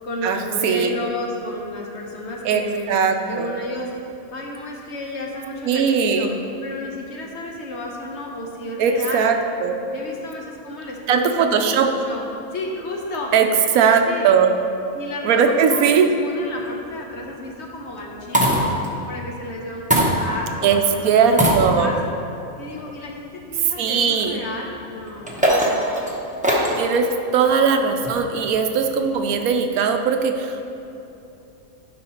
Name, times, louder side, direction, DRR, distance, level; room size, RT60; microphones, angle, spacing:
voice 1, 0.0-3.9 4.3-6.3 6.6-9.3 9.9-12.2 12.5-13.3 14.1-14.3 14.9-18.7 19.1-22.0 22.6-25.9, left 1 dB, 55° left, 0 dB, 1.1 m, -32 dB
voice 2, 2.9-3.5 5.6-6.3 8.8-9.3 9.6-9.8 11.1-11.9 13.3-13.5 13.7-14.6 15.2-16.1 20.6-21.9 23.8-24.4 26.8-30.6, right 6 dB, 80° right, 5 dB, 1.1 m, -19 dB
sound 1, 16.6-17.0 18.0-18.9 19.9-20.6 21.3-22.1 22.8-22.9 25.0-26.9 28.0-28.5, right 1 dB, 5° right, 0.7 m, -21 dB
12.0 x 5.6 x 2.9 m, 2.7 s
omnidirectional pair, 1.5 m